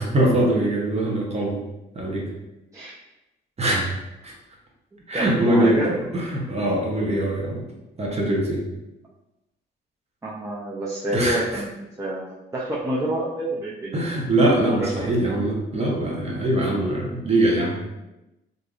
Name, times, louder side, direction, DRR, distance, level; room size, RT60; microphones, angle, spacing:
voice 1, 0.0-1.6 1.9-2.3 3.6-4.0 4.2-4.3 5.1-5.8 6.1-7.6 8.0-8.6 11.1-11.6 13.9-17.8, right 1 dB, 35° right, -2 dB, 0.9 m, -22 dB
voice 2, 4.9-5.9 10.2-11.7 12.0-13.9 14.8-15.2, right 1 dB, 15° right, -6 dB, 0.5 m, -28 dB
3.3 x 2.5 x 2.3 m, 0.96 s
cardioid pair, 90°, 20 cm